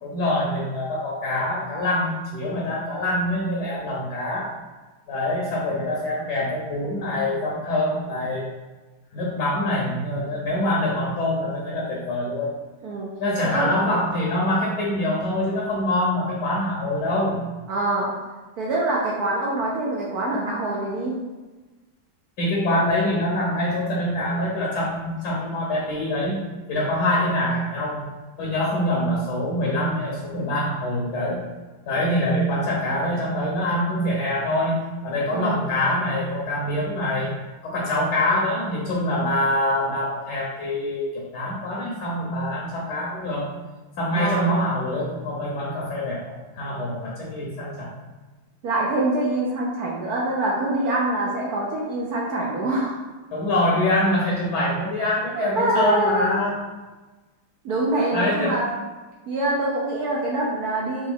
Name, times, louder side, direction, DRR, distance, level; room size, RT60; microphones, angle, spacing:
voice 1, 0.0-4.5 5.1-8.5 9.1-12.5 13.2-17.4 22.4-26.4 26.7-28.1 28.4-31.4 31.8-37.3 37.6-43.5 44.0-47.9 53.3-56.6 58.1-58.6, left 1 dB, 60° left, -4 dB, 1.2 m, -25 dB
voice 2, 17.7-18.1 18.6-21.2 35.3-35.6 44.1-44.5 48.6-53.0 55.3-56.4 57.6-58.7 59.3-61.1, right 2 dB, 70° right, -4 dB, 0.9 m, -24 dB
4.0 x 3.2 x 3.8 m, 1.2 s
omnidirectional pair, 2.4 m